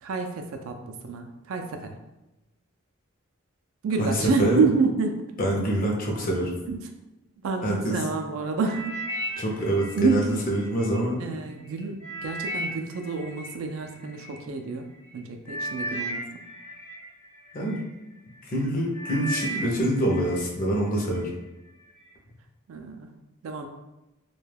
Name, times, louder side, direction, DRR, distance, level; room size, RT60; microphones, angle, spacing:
voice 1, 0.0-2.0 3.8-5.3 6.6-6.8 7.4-9.0 9.3-9.4 9.9-10.3 11.2-14.9 15.1-16.5 22.7-23.1 23.4-23.7, right 4 dB, 70° right, 5 dB, 0.3 m, -28 dB
voice 2, 4.0-4.7 5.4-6.5 7.6-8.0 9.4-11.2 17.5-17.8 18.5-21.3, right 1 dB, 40° left, -1 dB, 0.5 m, -25 dB
sound 1, 8.6-11.0 11.5-14.4 15.1-15.2 15.5-17.8 18.4-18.6 18.9-20.5 20.8-21.3 21.9-22.0, right 1 dB, 65° left, 0.8 m, -36 dB
2.2 x 2.2 x 3.2 m, 1.0 s
head